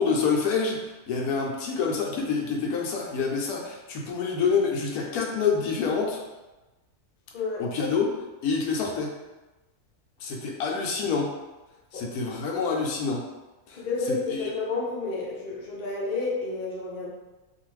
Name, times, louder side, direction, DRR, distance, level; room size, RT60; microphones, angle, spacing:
voice 1, 0.0-6.2 7.6-8.1 8.4-9.1 10.2-11.3 11.9-13.2 13.7-13.8 14.1-14.5, left 5 dB, 90° left, -1 dB, 1.1 m, -27 dB
voice 2, 7.3-7.7 11.9-12.0 13.8-17.1, left 3 dB, 45° left, -4 dB, 0.6 m, -30 dB
2.6 x 2.4 x 3.1 m, 1.1 s
omnidirectional pair, 1.5 m